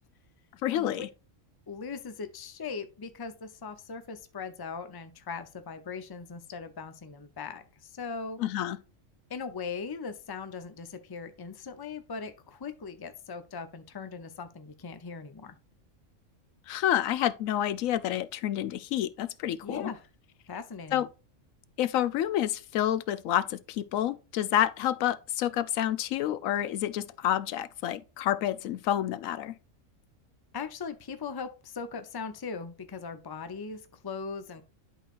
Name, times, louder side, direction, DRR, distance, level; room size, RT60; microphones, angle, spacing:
voice 1, 0.6-1.1 8.4-8.8 16.7-19.9 20.9-21.1 21.8-29.5, left 11 dB, 85° left, 1.0 m, -29 dB
voice 2, 1.7-8.4 9.3-15.6 19.6-20.1 20.5-21.0 30.5-34.6, left 5 dB, 25° left, 0.5 m, -39 dB
11.5 x 4.0 x 2.5 m
omnidirectional pair, 1.4 m